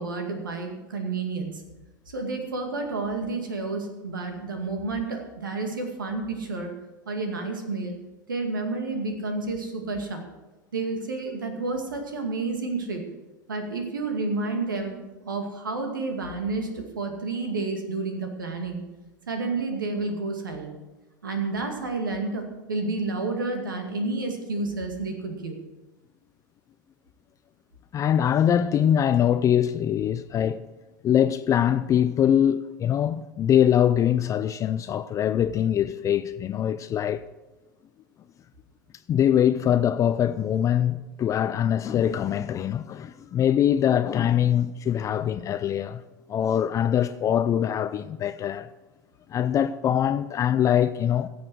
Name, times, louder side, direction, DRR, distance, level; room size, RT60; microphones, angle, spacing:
voice 1, 0.0-1.6 2.1-6.7 7.1-7.9 8.3-10.3 10.7-13.0 13.5-18.8 19.3-20.8 21.2-25.6, right 3 dB, 80° right, 2.2 m, -30 dB
voice 2, 27.9-30.7 31.0-37.3 39.1-46.0 46.3-48.7 49.3-51.3, left 10 dB, 30° left, 0.5 m, -23 dB
16.5 x 7.2 x 6.4 m
figure-of-eight pair, 85°, 11 cm